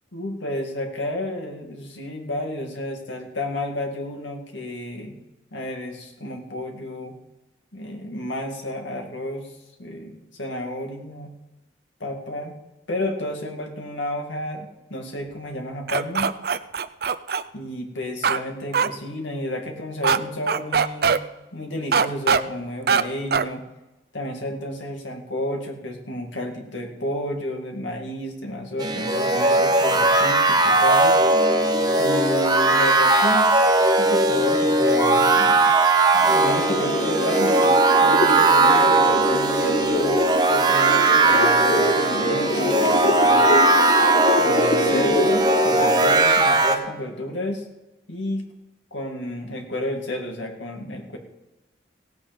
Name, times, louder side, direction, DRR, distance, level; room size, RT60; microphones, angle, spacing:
voice 1, 0.1-5.2 5.5-7.1 7.7-9.5 9.8-11.3 12.0-12.5 12.9-16.3 17.5-21.1 21.5-23.6 24.1-31.2 32.0-35.7 36.1-40.2 40.5-43.5 44.4-47.7 48.1-48.4 48.9-51.2, left 1 dB, 85° left, 3 dB, 2.3 m, -31 dB
sound 1, 15.9-17.4 18.2-18.4 18.7-18.9 20.0-20.2 20.5-21.2 21.9-22.4 22.9-23.0 23.3-23.5, right 6 dB, 55° right, 0.5 m, -20 dB
sound 2, 28.8-46.8, right 2 dB, 20° right, 0.9 m, -18 dB
sound 3, 36.2-46.2, left 2 dB, 45° left, 0.7 m, -26 dB
17.0 x 8.7 x 5.3 m, 1.0 s
head